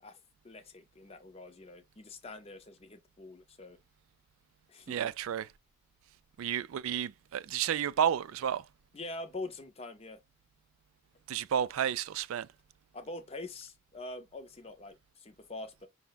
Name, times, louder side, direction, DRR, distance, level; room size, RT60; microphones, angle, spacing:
voice 1, 0.0-3.8 4.7-5.1 8.9-10.2 12.9-15.9, left 2 dB, 25° left, 0.5 m, -45 dB
voice 2, 4.9-5.5 6.4-8.7 11.3-12.5, right 9 dB, 70° right, 0.3 m, -31 dB
5.7 x 2.1 x 3.9 m
head